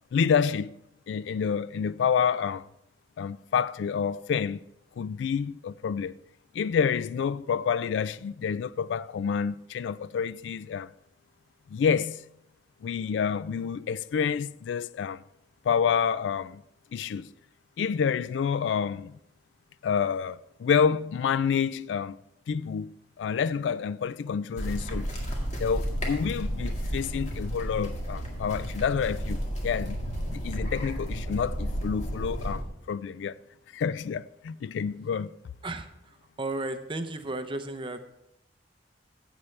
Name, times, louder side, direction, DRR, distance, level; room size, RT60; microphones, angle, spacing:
voice 1, 0.1-0.7 1.1-2.7 3.2-4.6 5.0-6.1 6.5-10.9 11.7-12.2 12.8-15.2 15.6-16.6 16.9-17.3 17.8-19.2 19.8-22.2 22.5-22.9 23.2-25.1 25.6-30.0 30.3-33.4 33.7-35.3, left 7 dB, 80° left, 0.3 m, -28 dB
sound 1, 24.6-32.6, equal, 40° left, 1.9 m, -32 dB
voice 2, 36.4-38.0, right 2 dB, 30° right, 0.7 m, -33 dB
15.5 x 7.3 x 3.3 m
head